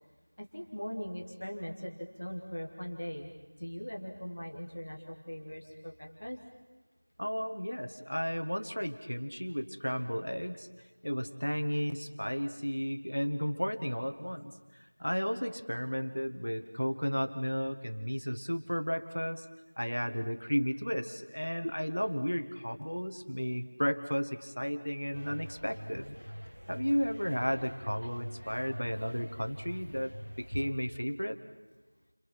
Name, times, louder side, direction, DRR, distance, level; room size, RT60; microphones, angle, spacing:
voice 1, 0.4-3.3 3.6-6.4 21.6-21.7, equal, 15° left, 1 dB, 1.1 m, -40 dB
voice 2, 7.2-10.7 11.0-19.5 19.8-26.2 26.7-31.4, equal, 45° left, 7 dB, 1.7 m, -33 dB
sound 1, 25.1-30.7, equal, 55° right, 1.5 m, -46 dB
30.0 x 26.0 x 6.0 m, 1.2 s
figure-of-eight pair, 180°, 0 cm